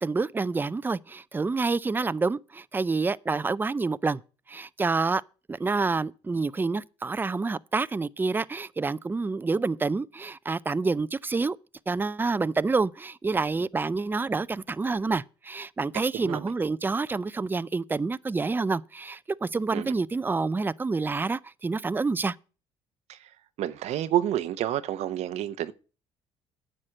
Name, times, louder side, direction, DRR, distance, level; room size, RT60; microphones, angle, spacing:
voice 1, 0.0-4.2 4.5-5.2 5.5-11.6 11.9-22.4, right 4 dB, 15° right, 0.5 m, -28 dB
voice 2, 16.1-16.5 19.7-20.0 23.1-23.3 23.6-25.7, right 12 dB, 70° right, 0.8 m, -29 dB
9.7 x 6.5 x 7.6 m
supercardioid pair, 75°, 12 cm